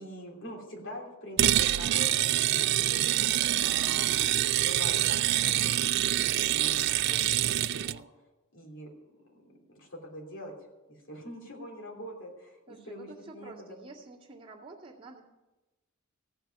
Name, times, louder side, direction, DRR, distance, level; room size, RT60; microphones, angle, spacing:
voice 1, 0.0-2.3 2.5-3.0 3.6-5.7 6.2-8.0 8.5-10.5 10.9-13.8, equal, 65° left, 0 dB, 3.1 m, -44 dB
sound 1, 1.4-8.0, right 13 dB, 55° right, 0.3 m, -26 dB
voice 2, 12.7-15.2, right 3 dB, 25° right, -3 dB, 2.0 m, -48 dB
15.5 x 5.8 x 8.8 m, 1.1 s
head